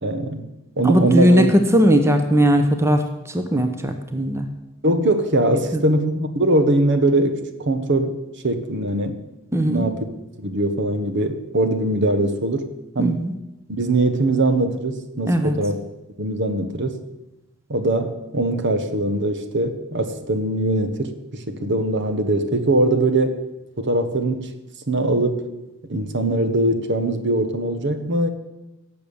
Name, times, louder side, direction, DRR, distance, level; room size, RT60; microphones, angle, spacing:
voice 1, 0.0-0.4 0.8-1.5 4.8-8.2 8.4-9.2 9.7-10.0 10.4-12.7 12.9-13.3 13.7-15.8 16.2-17.0 17.7-23.4 23.8-24.5 24.9-25.5 25.9-28.3, right 2 dB, 55° right, 8 dB, 1.3 m, -21 dB
voice 2, 0.8-3.0 3.3-4.5 5.7-5.8 9.5-9.9 13.0-13.3 15.3-15.5, equal, 15° right, 7 dB, 0.8 m, -18 dB
17.0 x 7.1 x 7.1 m, 0.99 s
head